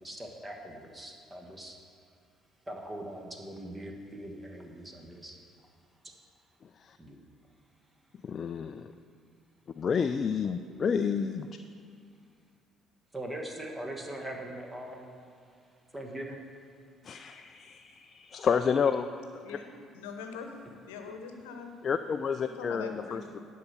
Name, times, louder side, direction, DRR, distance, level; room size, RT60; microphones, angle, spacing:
voice 1, 0.0-1.8 2.7-5.4 6.0-6.1 7.0-7.2 10.7-10.8 13.1-15.2 15.9-16.4 21.1-21.2, right 1 dB, 20° right, 2 dB, 1.4 m, -41 dB
voice 2, 8.2-8.9 9.8-11.5 17.0-19.1 21.8-23.4, left 6 dB, 45° left, 9 dB, 0.3 m, -30 dB
voice 3, 19.4-20.5 20.9-21.7 22.6-23.2, left 5 dB, 80° left, 5 dB, 0.9 m, -42 dB
10.5 x 4.6 x 6.7 m, 2.2 s
hypercardioid pair, 50°, 0 cm